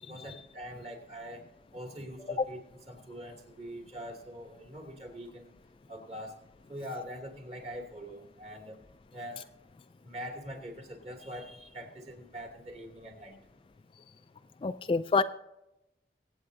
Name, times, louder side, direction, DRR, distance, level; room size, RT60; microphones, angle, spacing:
voice 1, 0.0-1.4 1.7-2.6 2.9-5.5 5.9-6.3 6.7-8.8 9.1-9.4 10.0-13.4, equal, 35° right, 2 dB, 2.6 m, -43 dB
voice 2, 14.6-15.2, left 4 dB, 30° left, 10 dB, 0.3 m, -28 dB
23.5 x 8.5 x 2.7 m, 0.91 s
head